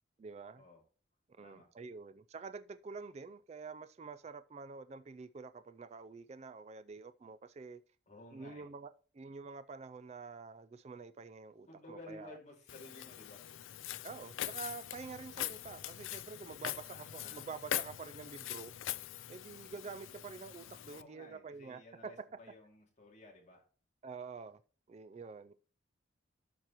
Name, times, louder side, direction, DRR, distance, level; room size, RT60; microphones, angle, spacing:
voice 1, 0.2-0.6 1.4-7.8 8.3-12.4 14.0-18.7 19.3-22.1 24.0-24.6 24.9-25.5, right 4 dB, 30° right, 0.3 m, -48 dB
voice 2, 8.1-8.7 11.7-13.4 16.9-17.5 17.9-18.0 20.9-23.6, left 1 dB, 35° left, 2.4 m, -55 dB
Walk footsteps, 12.7-21.0, left 12 dB, 75° left, 0.4 m, -42 dB
12.5 x 4.5 x 3.0 m
head